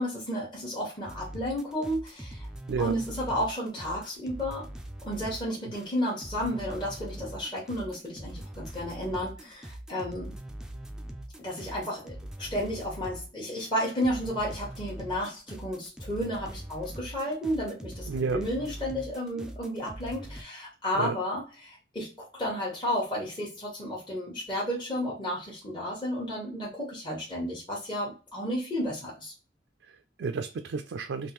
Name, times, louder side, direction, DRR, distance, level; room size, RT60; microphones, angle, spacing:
voice 1, 0.0-2.5 2.8-4.7 5.0-10.3 11.4-29.3, equal, 25° left, -5 dB, 1.0 m, -32 dB
sound 1, 1.0-13.3 13.5-20.4, right 1 dB, 5° right, 0.4 m, -42 dB
voice 2, 18.1-18.4 20.9-21.2 29.9-31.3, right 5 dB, 80° right, 7 dB, 0.4 m, -31 dB
3.5 x 2.5 x 3.0 m, 0.34 s
head